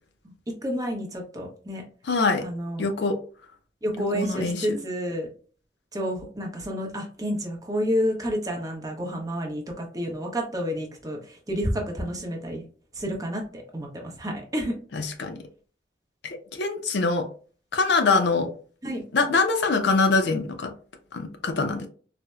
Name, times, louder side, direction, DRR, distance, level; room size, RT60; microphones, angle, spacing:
voice 1, 0.6-1.8 2.4-2.9 3.8-5.3 5.9-12.6 12.9-14.7 18.8-19.0, equal, 20° right, 0.7 m, -30 dB
voice 2, 2.0-2.4 2.8-3.2 4.1-4.8 14.9-15.4 16.5-17.3 17.7-18.5 19.1-20.7 21.1-21.9, left 3 dB, 65° left, 0.5 m, -23 dB
4.1 x 2.0 x 2.3 m
head